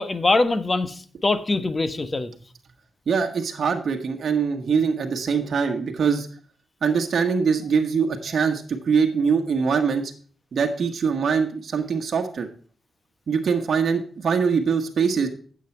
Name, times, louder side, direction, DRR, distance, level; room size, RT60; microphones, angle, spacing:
voice 1, 0.0-2.3, left 2 dB, 35° left, 11 dB, 1.2 m, -23 dB
voice 2, 3.1-6.3 6.8-10.1 10.5-12.5 13.3-15.3, right 6 dB, 65° right, 4 dB, 1.2 m, -23 dB
9.3 x 7.6 x 4.4 m, 0.42 s
cardioid pair, 65°, 0 cm